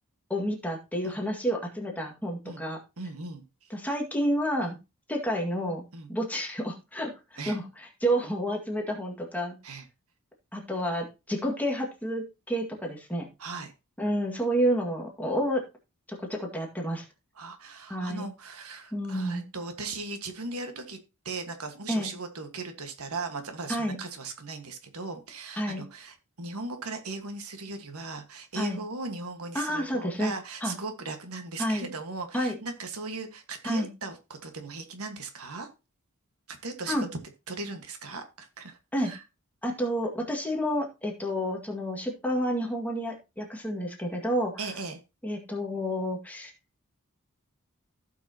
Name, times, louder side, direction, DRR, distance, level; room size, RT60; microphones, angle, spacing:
voice 1, 0.3-2.8 3.7-4.8 5.1-9.6 10.5-13.3 14.0-15.6 16.1-17.0 17.9-18.3 18.9-19.4 21.9-22.1 23.7-24.0 25.6-25.8 28.6-28.8 29.5-30.3 30.6-30.7 31.6-31.9 32.3-32.6 33.6-33.9 36.9-37.1 38.9-39.1 39.6-44.5 45.2-46.5, equal, 5° left, 0 dB, 1.9 m, -30 dB
voice 2, 3.0-3.7 4.6-4.7 5.9-6.1 7.4-7.6 9.6-9.8 13.4-13.7 17.4-21.0 21.2-35.7 36.5-37.0 37.5-38.8 39.0-39.2 44.6-45.0, right 3 dB, 70° right, 6 dB, 1.6 m, -38 dB
15.5 x 6.0 x 2.9 m, 0.27 s
head